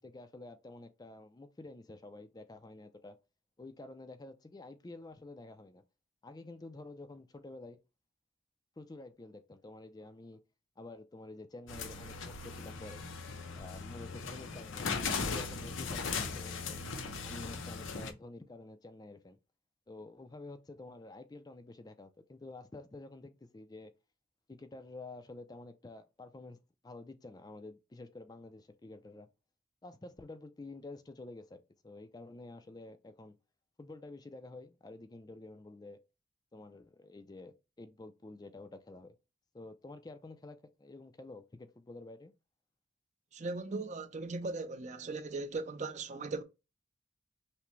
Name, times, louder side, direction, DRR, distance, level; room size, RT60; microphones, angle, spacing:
voice 1, 0.0-3.2 3.6-5.8 6.2-7.8 8.8-10.4 10.8-13.0 13.5-16.8 17.2-19.4 19.9-23.9 24.5-26.6 26.8-29.3 29.8-33.4 33.8-36.0 36.5-39.1 39.5-42.3, left 2 dB, 20° left, 0.4 m, -49 dB
sound 1, 11.7-18.1, left 4 dB, 85° left, 0.7 m, -38 dB
voice 2, 43.3-46.4, right 3 dB, 35° right, 0.5 m, -38 dB
5.8 x 2.1 x 3.1 m
head